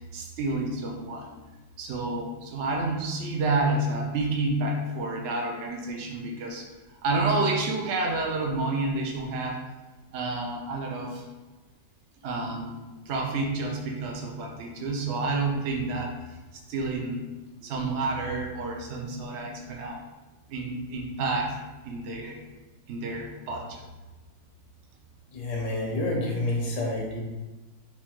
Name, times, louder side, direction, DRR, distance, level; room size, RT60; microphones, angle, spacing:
voice 1, 0.0-1.3 1.8-6.6 7.0-9.6 10.1-11.3 12.2-12.7 13.1-16.1 16.7-17.2 17.6-20.0 20.5-21.6 21.8-22.4 22.9-23.8, right 2 dB, 70° right, 0 dB, 0.6 m, -29 dB
voice 2, 25.3-27.2, left 2 dB, 90° left, -1 dB, 1.6 m, -28 dB
4.5 x 2.3 x 4.4 m, 1.2 s
omnidirectional pair, 1.9 m